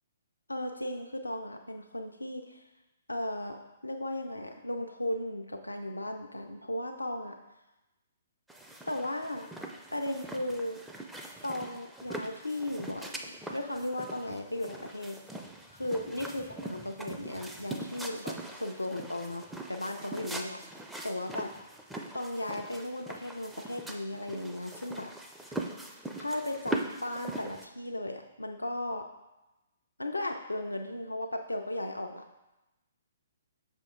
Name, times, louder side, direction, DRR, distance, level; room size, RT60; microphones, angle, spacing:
voice 1, 0.5-2.6 3.1-7.4 8.9-9.5 9.9-10.8 11.4-15.2 15.7-20.6 21.0-21.5 22.1-25.1 26.2-29.1 30.0-32.2, left 1 dB, 80° left, 4 dB, 0.4 m, -36 dB
sound 1, 8.5-27.7, right 2 dB, 5° right, 0.4 m, -42 dB
6.2 x 4.4 x 3.6 m, 1.0 s
figure-of-eight pair, 125°, 0 cm